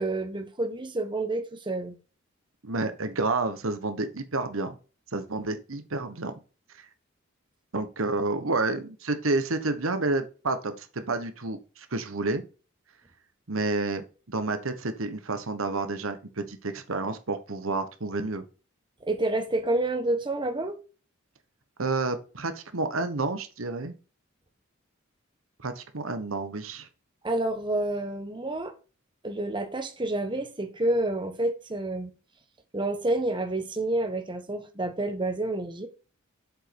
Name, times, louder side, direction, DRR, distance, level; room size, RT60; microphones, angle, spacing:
voice 1, 0.0-2.0 19.1-20.8 27.2-28.7 29.2-32.1 32.7-35.9, right 2 dB, 25° right, 1.2 m, -29 dB
voice 2, 2.6-4.8 5.1-6.3 6.7-6.8 7.7-12.4 13.5-18.4 21.8-23.9 25.6-26.9, right 3 dB, 85° right, 1.2 m, -30 dB
7.5 x 5.2 x 5.9 m
head